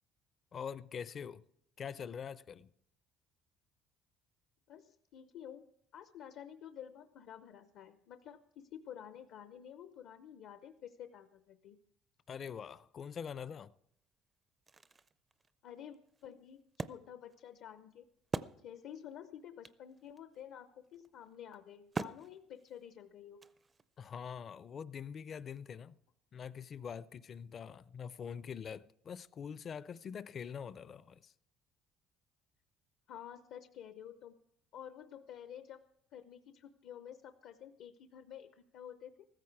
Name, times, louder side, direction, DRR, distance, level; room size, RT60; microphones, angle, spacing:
voice 1, 0.5-1.4 1.8-2.7 12.3-13.7 24.0-26.0 26.3-31.3, left 7 dB, 35° left, 0.5 m, -44 dB
voice 2, 4.7-5.7 5.9-11.8 15.6-18.1 18.6-23.5 33.1-34.4 34.7-35.8 36.1-39.3, left 9 dB, 70° left, 0.7 m, -51 dB
Wood, 13.9-14.0 14.4-19.1 19.4-19.5 19.6-24.0, right 4 dB, 20° right, 0.4 m, -45 dB
15.0 x 14.0 x 4.7 m
cardioid pair, 140°, 0 cm